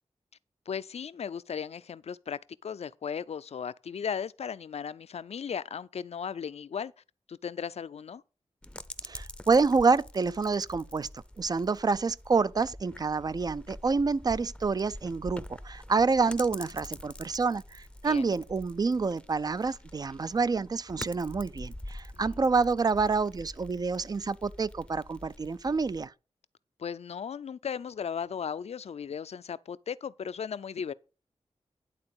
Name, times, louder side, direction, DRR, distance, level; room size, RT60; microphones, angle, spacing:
voice 1, 0.7-6.9 7.3-8.2 18.0-18.3 26.8-30.9, left 7 dB, 65° left, 0.4 m, -36 dB
sound 1, 8.6-26.1, left 1 dB, 10° left, 0.6 m, -46 dB
voice 2, 9.0-11.1 11.4-26.1, right 4 dB, 35° right, 0.4 m, -28 dB
11.0 x 3.9 x 7.0 m
wide cardioid pair, 85°, 11 cm